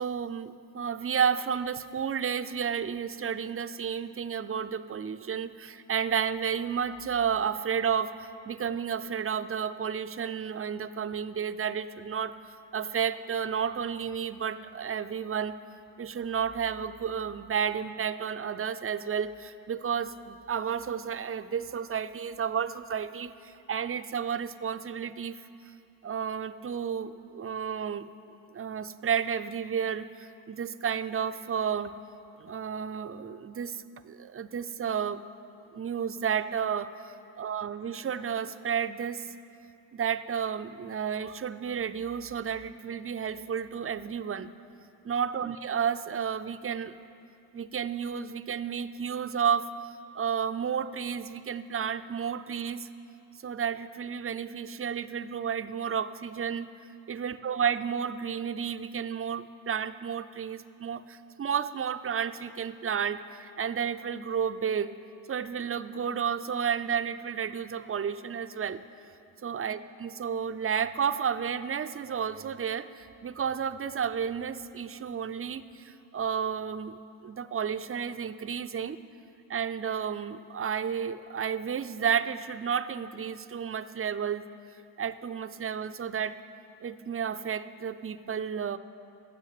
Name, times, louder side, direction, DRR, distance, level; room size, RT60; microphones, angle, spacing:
voice 1, 0.0-12.3 12.7-15.5 16.0-25.4 26.0-28.1 28.5-31.9 32.4-35.2 35.7-39.3 39.9-44.5 45.0-47.0 47.5-52.9 53.4-56.7 57.1-64.9 65.3-68.8 69.4-79.0 79.5-84.4 85.0-86.4 86.8-88.8, right 7 dB, 30° right, 12 dB, 0.5 m, -32 dB
10.5 x 7.5 x 8.3 m, 2.7 s
supercardioid pair, 50°, 49 cm